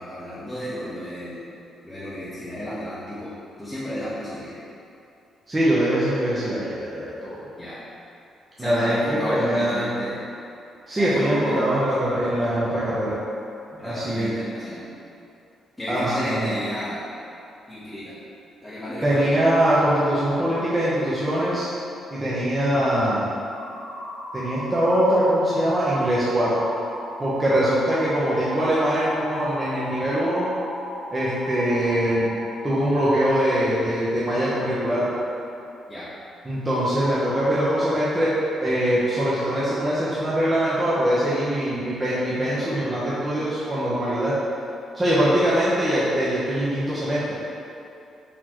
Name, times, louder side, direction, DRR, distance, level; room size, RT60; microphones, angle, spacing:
voice 1, 0.0-1.5 1.8-4.6 7.6-7.8 8.6-10.3 11.0-11.7 13.7-14.9 15.8-17.0 17.7-18.2 18.6-19.5 35.9-36.1, left 1 dB, 15° left, -11 dB, 0.8 m, -32 dB
voice 2, 5.5-7.4 8.6-10.0 10.9-13.2 13.8-14.3 15.9-16.5 19.0-21.7 22.1-23.3 24.3-26.7 27.2-30.5 31.1-32.3 32.6-35.2 36.4-38.3 38.6-44.4 44.9-47.4, right 1 dB, 20° right, -9 dB, 0.7 m, -22 dB
sound 1, 23.4-32.8, equal, 60° left, 1.2 m, -36 dB
4.2 x 3.0 x 2.9 m, 2.7 s
cardioid pair, 90°, 0 cm